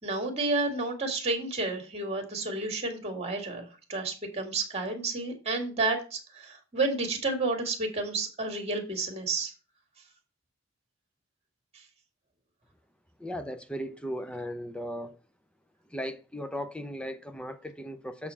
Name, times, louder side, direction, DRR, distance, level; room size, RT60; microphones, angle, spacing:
voice 1, 0.0-9.5, right 3 dB, 30° right, 2.0 m, -31 dB
voice 2, 13.2-15.2 15.9-18.3, equal, 5° left, 0.7 m, -37 dB
7.3 x 4.3 x 5.5 m
head